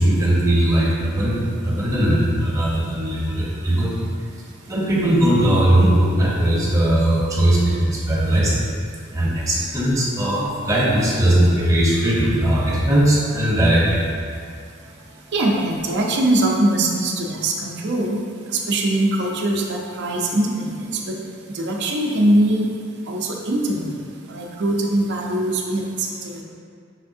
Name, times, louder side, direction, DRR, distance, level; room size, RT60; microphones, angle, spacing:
voice 1, 0.0-4.3 4.7-8.6 9.1-14.1 14.8-15.2, right 1 dB, 15° right, -6 dB, 0.7 m, -19 dB
voice 2, 15.3-18.2 18.5-21.2 21.5-22.7 23.1-23.9 24.3-26.4, right 1 dB, 55° right, -1 dB, 0.5 m, -22 dB
5.6 x 3.3 x 2.6 m, 2.2 s
head